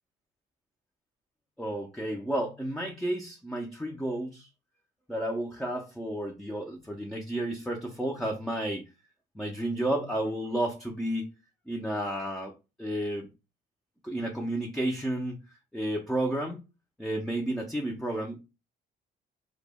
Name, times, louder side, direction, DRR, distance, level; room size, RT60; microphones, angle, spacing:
voice 1, 1.6-4.5 5.1-8.8 9.4-11.3 11.7-12.5 12.8-13.3 14.0-15.4 15.7-16.6 17.0-18.4, right 1 dB, ahead, 1 dB, 0.4 m, -31 dB
2.1 x 2.0 x 3.4 m, 0.28 s
cardioid pair, 110°, 17 cm